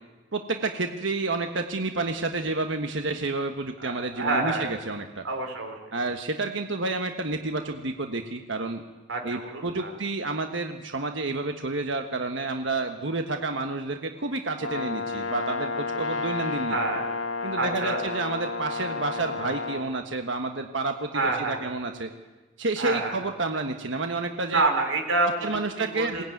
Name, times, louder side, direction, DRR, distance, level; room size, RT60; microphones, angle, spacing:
voice 1, 0.3-5.3 5.9-8.8 9.2-16.8 17.4-22.1 22.6-24.6 25.4-26.2, right 3 dB, 70° right, 5 dB, 1.4 m, -30 dB
voice 2, 3.8-4.7 5.2-5.8 9.1-9.9 16.7-17.0 17.6-18.0 21.1-21.6 22.8-23.2 24.5-26.2, right 3 dB, 85° right, 3 dB, 4.3 m, -27 dB
Brass instrument, 14.6-19.9, left 4 dB, 75° left, 2.4 m, -31 dB
21.5 x 18.0 x 9.3 m, 1.2 s
head